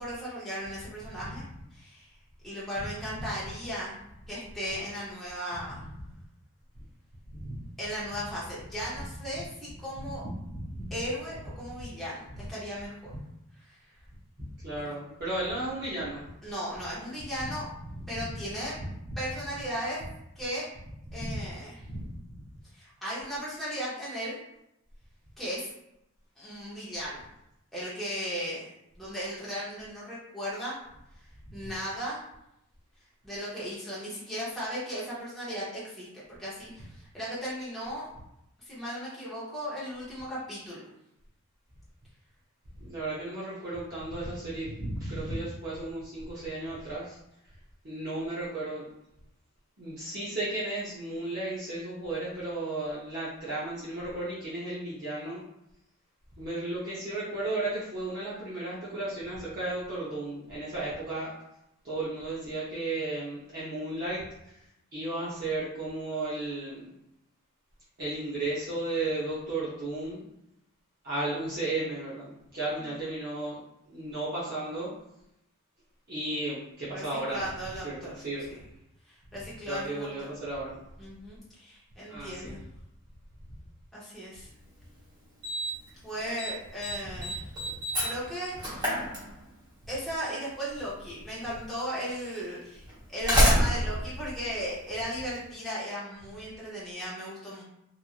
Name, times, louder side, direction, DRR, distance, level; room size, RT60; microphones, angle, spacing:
voice 1, 0.0-2.1 2.4-5.8 7.8-10.2 10.9-13.1 13.6-13.8 14.8-14.9 16.4-17.7 18.1-18.8 19.2-20.0 20.4-20.7 21.1-21.8 22.7-24.4 25.4-25.7 26.4-27.2 27.7-30.8 31.5-32.2 33.2-38.1 38.6-40.8 76.9-78.2 78.5-78.6 79.1-80.4 81.0-82.6 83.9-84.5 86.0-87.5 88.0-89.0 89.9-92.8 93.1-97.6, equal, ahead, -10 dB, 0.7 m, -36 dB
voice 2, 10.5-10.9 11.8-11.9 14.4-16.3 17.5-17.6 18.7-19.2 21.1-21.4 21.9-22.4 42.8-47.2 47.8-48.9 49.8-55.4 56.4-61.3 61.8-64.5 64.9-66.8 68.0-70.2 71.0-73.6 73.9-74.9 76.1-77.5 77.8-78.6 79.7-80.8 82.1-82.6, right 2 dB, 45° right, -10 dB, 0.7 m, -34 dB
Slam, 84.6-84.7 85.4-85.9 86.2-86.5 86.8-89.7 90.9-91.0 91.8-91.9 92.9-95.2, equal, 20° right, 1.0 m, -27 dB
3.0 x 2.5 x 2.4 m, 0.83 s
head